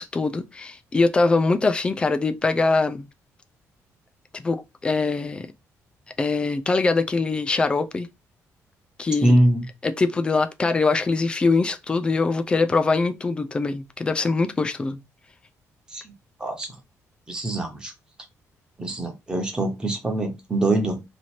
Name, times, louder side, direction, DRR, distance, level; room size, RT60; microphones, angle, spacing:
voice 1, 0.0-3.1 4.3-5.5 6.2-8.1 9.0-9.3 9.8-15.0, left 3 dB, 15° left, 0.4 m, -23 dB
voice 2, 9.2-9.7 15.9-16.1 16.4-16.7 17.3-17.9 18.8-21.0, right 1 dB, 15° right, 0.9 m, -23 dB
3.0 x 2.6 x 4.2 m
cardioid pair, 180°, 6 cm